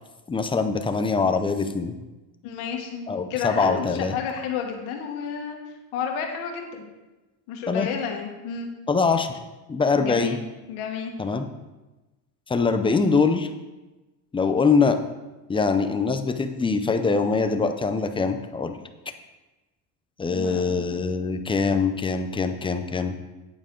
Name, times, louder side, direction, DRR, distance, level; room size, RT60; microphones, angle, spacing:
voice 1, 0.3-1.9 3.1-4.1 7.7-7.9 8.9-9.3 9.7-10.4 11.2-11.5 12.5-13.5 14.3-15.0 15.5-18.8 20.2-23.1, left 4 dB, 10° left, 8 dB, 0.4 m, -23 dB
voice 2, 2.4-5.6 5.9-6.9 7.5-8.7 10.0-10.4 10.7-11.1 20.3-21.0, left 7 dB, 85° left, 2 dB, 1.6 m, -31 dB
9.0 x 8.6 x 3.8 m, 1.1 s
cardioid pair, 135°, 48 cm